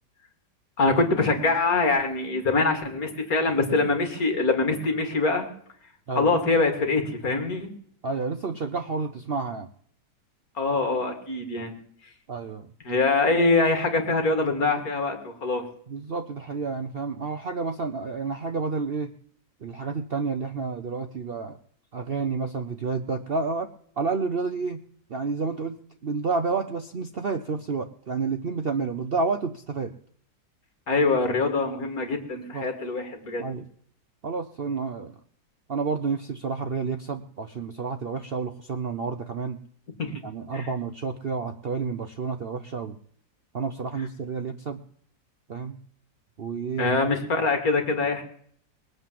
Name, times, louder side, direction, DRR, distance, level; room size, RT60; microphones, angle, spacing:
voice 1, 0.8-5.5 6.1-7.7 10.6-11.7 12.8-15.6 30.9-33.4 40.0-40.1 40.5-40.7 46.8-48.2, left 3 dB, 50° left, 5 dB, 2.5 m, -24 dB
voice 2, 8.0-9.7 12.3-12.7 15.9-19.1 19.6-21.6 21.9-24.8 25.1-29.9 32.5-32.7 33.4-33.7 34.2-35.2 35.7-39.6 40.2-43.0 43.5-44.8 45.5-45.8 46.4-46.9, right 4 dB, 75° right, 7 dB, 0.5 m, -30 dB
20.5 x 7.9 x 7.6 m, 0.63 s
omnidirectional pair, 2.0 m